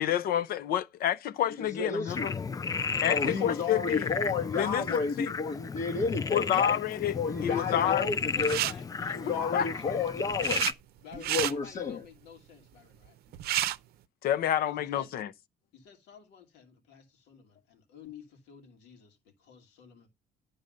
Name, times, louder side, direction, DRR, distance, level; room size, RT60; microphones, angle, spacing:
voice 1, 0.0-2.3 3.0-4.2 4.6-5.3 6.3-7.2 7.4-8.1 9.3-9.7 14.2-15.3, left 10 dB, 65° left, 0.7 m, -29 dB
voice 2, 1.6-2.3 3.0-6.8 7.2-8.6 9.1-10.6 11.1-12.0, left 4 dB, 45° left, 1.1 m, -31 dB
Frog, 2.1-10.7, left 5 dB, 20° left, 0.4 m, -34 dB
voice 3, 3.4-4.2 7.4-10.0 11.0-13.2 14.6-15.2 15.7-20.1, left 7 dB, 85° left, 2.6 m, -50 dB
sound 1, 8.4-8.7 9.9-10.7 11.1-11.5 13.0-13.1 13.3-13.8, right 13 dB, 70° right, 0.6 m, -30 dB
10.5 x 4.0 x 6.5 m
cardioid pair, 110°, 17 cm